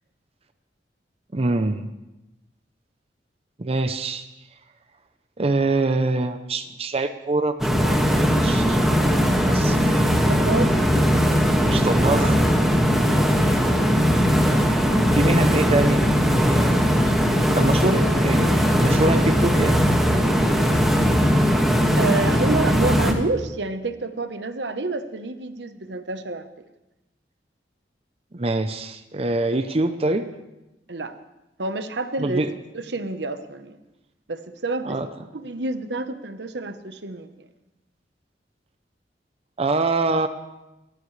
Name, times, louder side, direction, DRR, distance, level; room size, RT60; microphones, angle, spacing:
voice 1, 1.3-1.9 3.6-4.3 5.4-10.1 11.7-12.4 15.1-16.0 16.4-19.8 28.3-30.3 32.2-32.5 34.8-35.1 39.6-40.3, right 2 dB, 35° right, 8 dB, 0.7 m, -25 dB
sound 1, 7.6-23.1, equal, ahead, 1.8 m, -19 dB
voice 2, 9.8-11.1 22.0-26.5 30.9-31.1 31.6-32.4 32.7-33.8 34.3-35.0 35.3-37.5, right 3 dB, 75° right, 9 dB, 1.1 m, -29 dB
30.0 x 14.5 x 3.3 m, 0.98 s
head